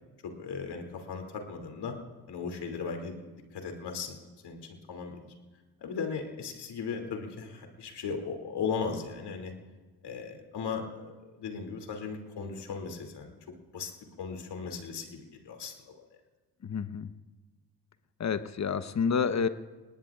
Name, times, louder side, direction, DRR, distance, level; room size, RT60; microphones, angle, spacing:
voice 1, 0.2-1.9 2.3-3.2 3.5-4.2 4.4-4.6 4.9-5.3 5.8-9.5 10.0-13.3 13.7-13.9 14.2-15.7, left 5 dB, 65° left, 3 dB, 2.7 m, -37 dB
voice 2, 16.6-17.1 18.2-19.5, left 6 dB, 40° left, 12 dB, 1.0 m, -29 dB
26.5 x 19.5 x 2.5 m, 1.3 s
hypercardioid pair, 45°, 43 cm